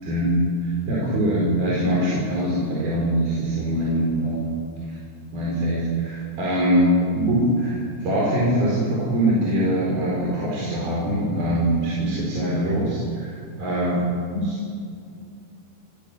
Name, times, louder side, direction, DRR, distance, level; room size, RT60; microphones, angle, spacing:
voice 1, 0.0-4.5 4.9-5.0 5.3-6.9 7.1-13.9 14.3-14.6, right 1 dB, 60° right, -5 dB, 6.3 m, -23 dB
26.5 x 20.5 x 6.9 m, 2.3 s
omnidirectional pair, 4.8 m